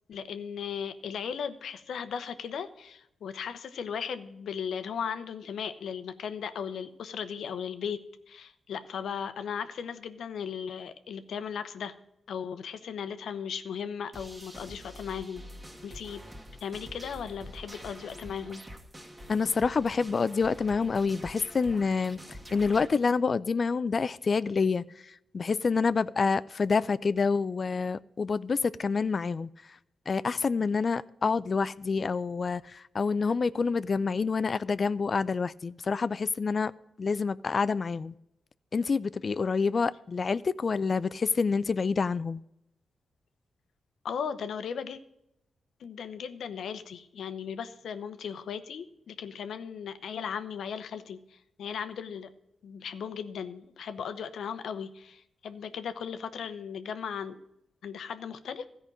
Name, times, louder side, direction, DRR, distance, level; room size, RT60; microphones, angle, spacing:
voice 1, 0.1-8.0 8.3-11.9 12.3-15.4 15.8-16.2 16.6-18.6 44.0-45.0 45.8-52.3 52.6-57.4 57.8-58.7, left 7 dB, 80° left, 0.7 m, -37 dB
sound 1, 14.1-22.9, equal, 20° right, 1.7 m, -46 dB
voice 2, 19.3-29.5 30.1-36.7 37.0-38.1 38.7-42.4, left 5 dB, 50° left, 0.4 m, -27 dB
14.0 x 5.2 x 7.4 m
cardioid pair, 55°, 0 cm